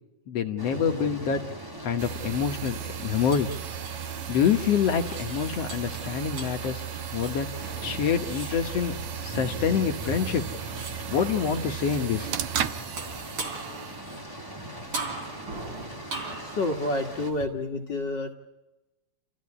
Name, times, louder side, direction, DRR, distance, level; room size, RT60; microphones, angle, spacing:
voice 1, 0.3-1.4 1.8-3.5 4.0-6.8 7.1-8.9 9.2-10.4 11.1-12.3, left 7 dB, 65° left, 5 dB, 1.7 m, -26 dB
sound 1, 0.6-17.3, right 1 dB, 10° right, 1.3 m, -41 dB
sound 2, 1.8-17.5, right 3 dB, 40° right, 3.7 m, -41 dB
sound 3, 2.0-14.0, right 11 dB, 75° right, 1.4 m, -36 dB
voice 2, 16.4-18.3, left 2 dB, 45° left, 2 dB, 1.6 m, -29 dB
29.5 x 15.0 x 9.7 m, 1.0 s
omnidirectional pair, 4.0 m